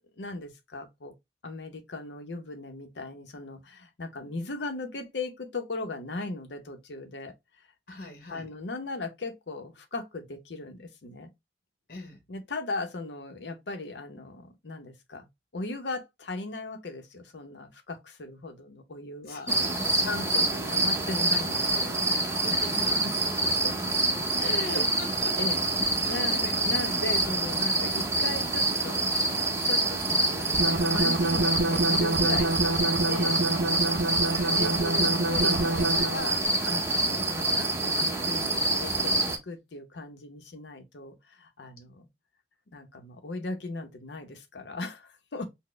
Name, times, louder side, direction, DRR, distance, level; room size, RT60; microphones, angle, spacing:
voice 1, 0.2-1.1 1.4-7.3 8.3-11.3 12.3-15.3 15.5-19.5 20.0-22.0 22.5-22.7 23.0-23.1 23.6-23.7 24.4-24.9 25.4-29.1 29.6-33.4 34.5-42.1 42.7-45.5, left 2 dB, 75° left, 0.8 m, -38 dB
voice 2, 7.9-8.5 11.9-12.2 19.2-20.4 22.0-23.0 24.6-25.4 26.0-27.0 33.9-34.6, left 1 dB, 55° left, 1.0 m, -43 dB
sound 1, 19.5-39.4, right 2 dB, 15° right, 0.7 m, -27 dB
sound 2, 30.5-36.3, right 2 dB, 65° right, 0.5 m, -27 dB
4.0 x 2.1 x 3.1 m
head